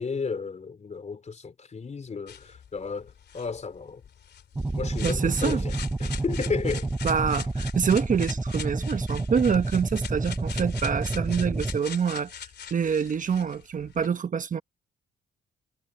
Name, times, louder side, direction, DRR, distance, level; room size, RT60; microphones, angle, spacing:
voice 1, 0.0-4.0 4.7-6.9, left 5 dB, 35° left, 4.1 m, -33 dB
sound 1, 2.3-14.1, left 8 dB, 55° left, 2.8 m, -42 dB
sound 2, 4.5-11.8, right 2 dB, 10° right, 0.7 m, -29 dB
voice 2, 5.0-5.6 7.0-14.6, right 6 dB, 40° right, 1.1 m, -26 dB
cardioid pair, 90°, 20 cm